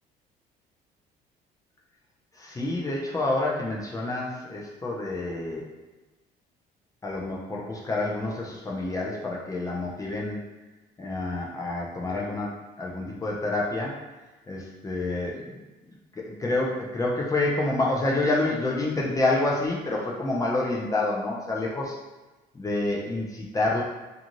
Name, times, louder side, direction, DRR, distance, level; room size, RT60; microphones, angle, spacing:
voice 1, 2.3-5.7 7.0-10.5 11.0-14.0 14.5-15.6 16.1-22.0 22.5-23.8, left 2 dB, 20° left, -3 dB, 0.5 m, -28 dB
2.6 x 2.3 x 3.0 m, 1.1 s
cardioid pair, 110°, 17 cm